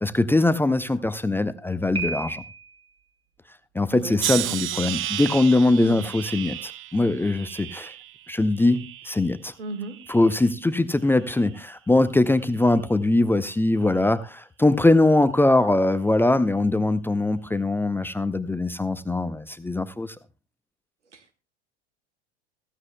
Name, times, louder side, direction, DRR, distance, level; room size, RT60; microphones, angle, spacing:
voice 1, 0.0-2.4 3.7-7.9 8.3-9.5 10.1-20.2, left 2 dB, 5° left, 13 dB, 0.6 m, -22 dB
Piano, 1.9-2.9, right 4 dB, 15° right, 3.8 m, -32 dB
voice 2, 3.9-4.9 5.8-6.1 9.6-10.0 21.1-21.4, right 4 dB, 90° right, 9 dB, 1.6 m, -36 dB
sound 1, 4.2-9.4 9.8-10.5 11.2-11.5, right 13 dB, 35° right, 0.7 m, -33 dB
15.5 x 15.0 x 2.2 m, 0.29 s
hypercardioid pair, 85°, 34 cm